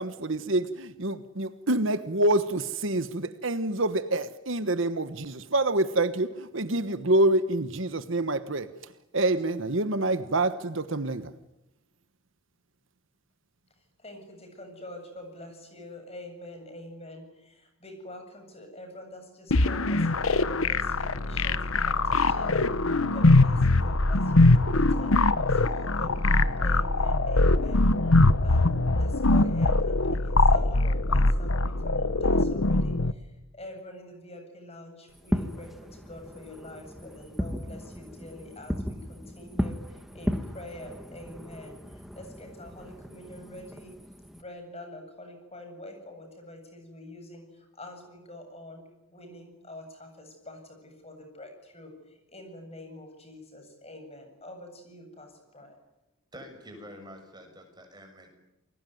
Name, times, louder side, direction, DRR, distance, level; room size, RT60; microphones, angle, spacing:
voice 1, 0.0-8.7 9.1-11.3, right 2 dB, 65° right, 12 dB, 1.3 m, -26 dB
voice 2, 14.0-43.9 44.3-55.8, left 1 dB, 30° left, 5 dB, 7.8 m, -46 dB
sound 1, 19.5-33.1, left 2 dB, 75° left, 1.2 m, -22 dB
Fireworks, 35.1-44.4, equal, ahead, 1.5 m, -36 dB
voice 3, 56.3-58.3, equal, 20° right, 4 dB, 6.7 m, -47 dB
29.5 x 21.5 x 9.4 m, 0.95 s
head